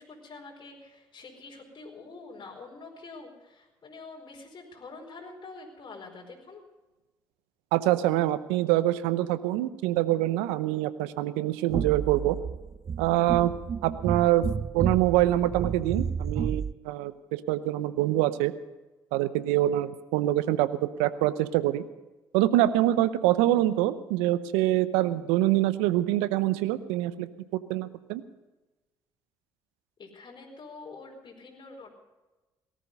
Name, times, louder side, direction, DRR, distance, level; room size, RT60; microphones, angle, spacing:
voice 1, 0.0-6.6 30.0-31.9, left 3 dB, 45° left, 0 dB, 4.7 m, -46 dB
voice 2, 7.7-12.4 13.0-13.5 13.8-14.5 14.7-18.5 19.1-21.8 22.3-28.2, right 14 dB, 80° right, 15 dB, 0.8 m, -25 dB
sound 1, 11.7-16.7, right 7 dB, 35° right, 0.4 m, -31 dB
18.0 x 13.5 x 5.4 m, 1.1 s
hypercardioid pair, 55°, 11 cm